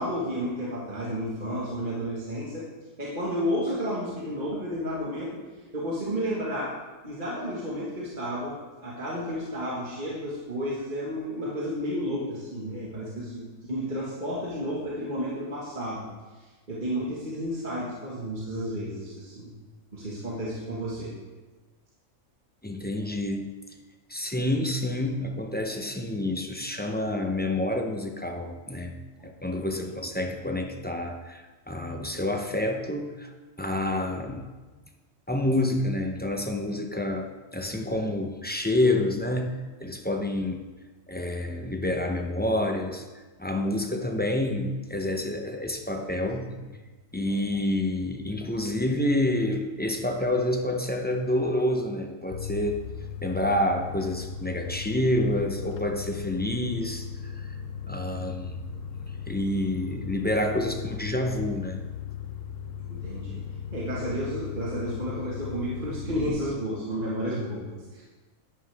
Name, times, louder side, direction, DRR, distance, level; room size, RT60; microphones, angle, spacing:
voice 1, 0.0-2.7 3.0-5.4 5.7-6.7 7.0-16.0 16.4-19.5 19.9-21.1 29.2-29.3 29.7-29.9 40.4-40.5 46.5-46.6 62.9-63.4 63.7-68.0, equal, 35° right, -6 dB, 1.8 m, -32 dB
voice 2, 22.6-23.5 24.1-28.9 29.2-33.3 33.6-34.5 35.3-40.6 41.1-46.5 47.1-52.8 53.2-57.5 57.9-58.6 59.3-61.8, left 1 dB, 10° left, 3 dB, 0.5 m, -28 dB
sound 1, 52.3-66.3, left 8 dB, 75° left, 1.1 m, -37 dB
11.0 x 9.7 x 3.5 m, 1.3 s
omnidirectional pair, 1.4 m